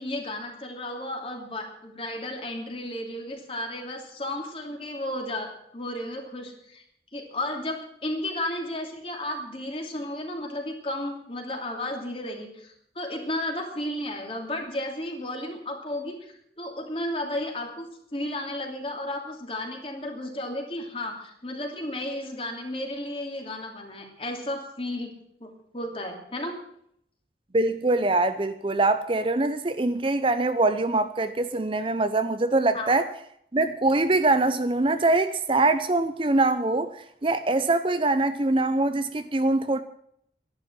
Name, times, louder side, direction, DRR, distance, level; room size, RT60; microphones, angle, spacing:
voice 1, 0.0-6.8 7.1-17.9 18.1-25.1 25.4-26.5 32.7-33.0, left 1 dB, 30° left, 2.8 m, -33 dB
voice 2, 27.5-33.0 33.5-39.8, right 2 dB, 30° right, 0.6 m, -23 dB
12.5 x 11.5 x 7.5 m
head